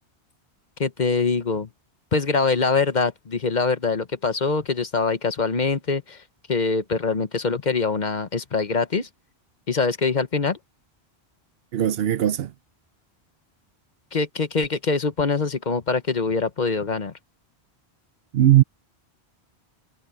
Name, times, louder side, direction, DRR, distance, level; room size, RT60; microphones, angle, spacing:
voice 1, 0.8-1.7 2.1-6.2 6.5-9.1 9.7-10.6 14.1-17.1, left 4 dB, 45° left, 1.1 m, -24 dB
voice 2, 11.7-12.5 18.3-18.6, right 12 dB, 70° right, 0.8 m, -18 dB
omnidirectional pair, 1.1 m